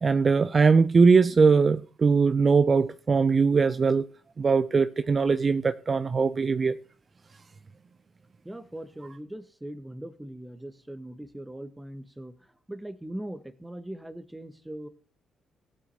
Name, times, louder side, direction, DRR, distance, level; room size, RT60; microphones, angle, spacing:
voice 1, 0.0-4.1 4.4-6.8, right 5 dB, 40° right, 0.4 m, -21 dB
voice 2, 8.4-14.9, right 1 dB, 10° right, 1.2 m, -40 dB
18.0 x 8.7 x 2.8 m
hypercardioid pair, 45°, 0 cm